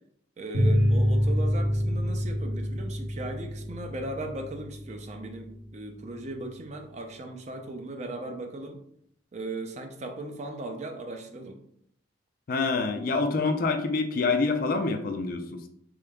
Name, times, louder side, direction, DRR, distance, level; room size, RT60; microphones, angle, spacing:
voice 1, 0.4-8.8 9.3-11.6, right 2 dB, 35° right, 4 dB, 0.4 m, -38 dB
sound 1, 0.5-5.7, equal, 65° right, 0.8 m, -27 dB
voice 2, 12.5-15.7, left 4 dB, 45° left, 6 dB, 0.3 m, -26 dB
3.7 x 3.4 x 2.2 m, 0.70 s
head